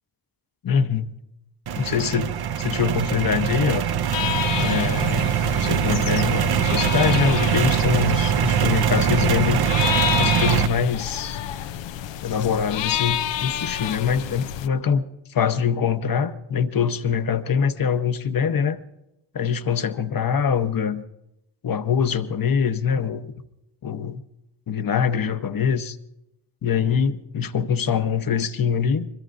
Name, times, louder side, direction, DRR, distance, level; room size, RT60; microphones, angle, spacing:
voice 1, 0.6-1.1 1.8-3.8 4.6-9.6 10.2-11.4 12.2-15.0 15.3-18.8 19.3-21.0 21.6-23.3 23.8-24.2 24.7-26.0 26.6-29.1, left 7 dB, 50° left, 1.0 m, -24 dB
sound 1, 1.7-10.7, right 9 dB, 60° right, 0.8 m, -22 dB
sound 2, 4.1-14.7, left 10 dB, 90° left, 0.7 m, -29 dB
25.0 x 21.5 x 2.6 m
cardioid pair, 65°, 43 cm